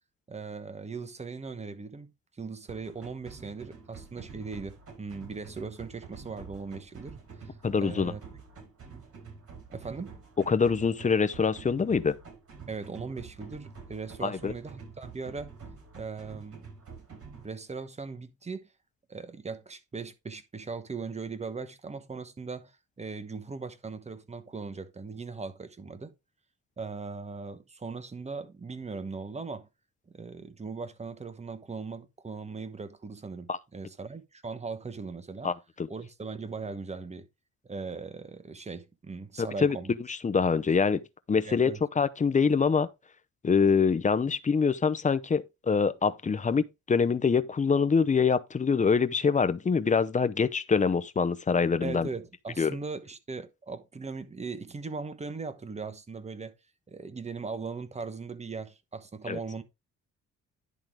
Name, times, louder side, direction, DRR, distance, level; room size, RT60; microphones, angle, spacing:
voice 1, 0.3-8.2 9.7-10.2 12.7-15.5 16.0-16.6 17.4-18.7 19.1-22.7 23.0-26.1 26.8-29.7 30.1-35.5 35.9-37.3 37.6-39.9 41.4-41.9 51.8-56.5 56.9-59.6, right 4 dB, 20° right, 1.1 m, -39 dB
sound 1, 2.7-17.4, right 5 dB, 50° right, 4.8 m, -47 dB
voice 2, 7.6-8.1 10.5-12.2 14.2-14.5 33.5-33.6 35.4-35.9 39.4-39.8 40.1-41.0 41.3-42.9 43.4-52.1 52.6-52.7 59.3-59.4, left 5 dB, 25° left, 0.7 m, -25 dB
10.5 x 3.8 x 4.7 m
cardioid pair, 90°, 30 cm